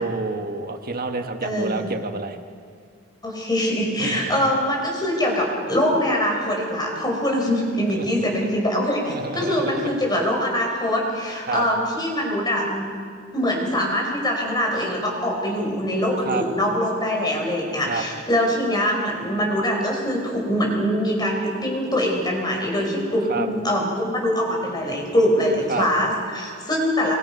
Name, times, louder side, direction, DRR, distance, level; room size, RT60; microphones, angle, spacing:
voice 1, 0.0-2.4 4.0-4.4 7.9-8.1 9.1-9.9 11.5-11.6 16.2-16.4 17.8-18.1 23.3-23.5 25.7-25.9, right 3 dB, 45° right, 6 dB, 1.5 m, -28 dB
voice 2, 1.4-1.9 3.2-12.9 13.3-27.2, equal, 20° left, 0 dB, 4.6 m, -23 dB
24.5 x 24.5 x 5.4 m, 2.1 s
head